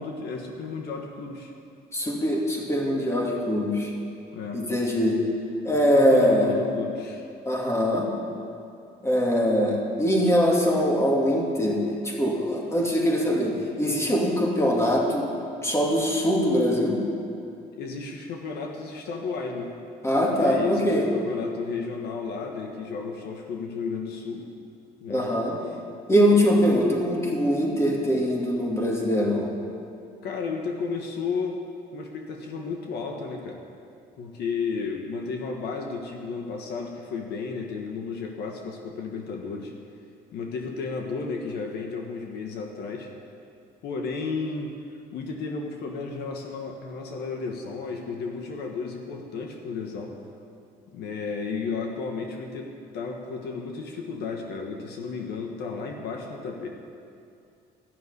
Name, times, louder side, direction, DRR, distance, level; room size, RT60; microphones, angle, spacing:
voice 1, 0.0-1.5 4.3-4.6 5.9-7.3 17.8-19.7 20.4-24.5 25.0-25.3 30.2-31.6 31.9-33.6 34.2-39.7 40.3-43.1 43.8-44.7 45.1-50.2 50.9-56.7, left 4 dB, 75° left, 2 dB, 1.5 m, -33 dB
voice 2, 1.9-3.9 4.5-5.2 5.6-6.5 7.5-8.1 9.0-15.3 15.6-17.0 20.0-21.1 25.1-25.6 26.1-29.5, equal, 15° left, -1 dB, 2.5 m, -22 dB
14.0 x 6.8 x 9.7 m, 2.5 s
cardioid pair, 110°, 17 cm